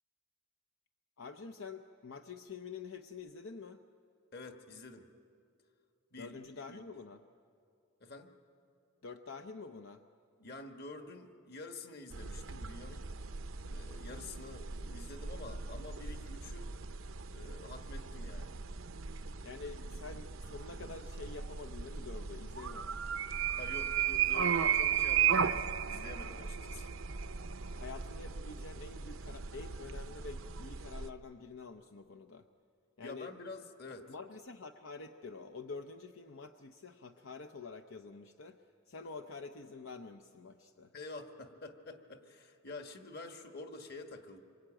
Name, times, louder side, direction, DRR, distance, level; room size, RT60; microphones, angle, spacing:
voice 1, 1.2-3.8 6.2-7.2 9.0-10.0 19.4-23.0 27.7-32.4 33.0-33.3 34.1-38.6 38.9-40.9, left 4 dB, 70° left, 6 dB, 0.7 m, -47 dB
voice 2, 4.3-5.1 6.1-6.8 8.0-8.3 10.4-13.1 13.6-16.7 17.3-18.6 23.5-26.9 33.0-34.1 40.9-44.4, left 2 dB, 45° left, 5 dB, 1.7 m, -48 dB
sound 1, 12.1-31.1, right 8 dB, 65° right, 0.7 m, -36 dB
26.0 x 23.0 x 8.9 m, 2.6 s
head